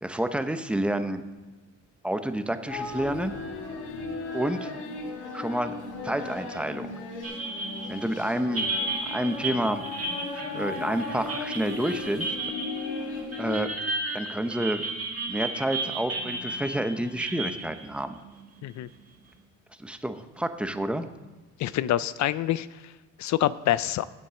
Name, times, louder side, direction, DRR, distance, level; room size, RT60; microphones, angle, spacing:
voice 1, 0.0-1.2 2.0-3.3 4.3-4.7 5.3-5.7 6.0-6.9 7.9-8.7 9.1-9.8 10.3-12.4 13.4-13.7 14.1-14.9 15.3-18.1 19.8-21.1, right 1 dB, 5° right, 9 dB, 0.8 m, -29 dB
sound 1, 2.7-13.7, left 4 dB, 85° left, 1.9 m, -36 dB
sound 2, 7.2-19.0, right 2 dB, 50° right, 2.3 m, -33 dB
voice 2, 21.6-22.7 23.2-24.1, left 13 dB, 65° left, 17 dB, 0.5 m, -26 dB
8.2 x 7.7 x 7.0 m, 1.2 s
cardioid pair, 90°, 30 cm